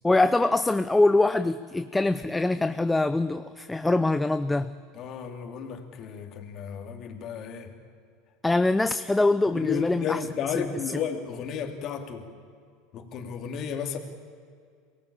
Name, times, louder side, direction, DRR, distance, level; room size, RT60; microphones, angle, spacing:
voice 1, 0.0-4.7 8.4-10.2 10.6-10.7, left 2 dB, 10° left, 12 dB, 0.6 m, -23 dB
voice 2, 4.9-7.7 9.5-12.3 12.9-14.0, left 7 dB, 50° left, 5 dB, 2.8 m, -33 dB
23.5 x 18.0 x 9.0 m, 2.1 s
hypercardioid pair, 90°, 0 cm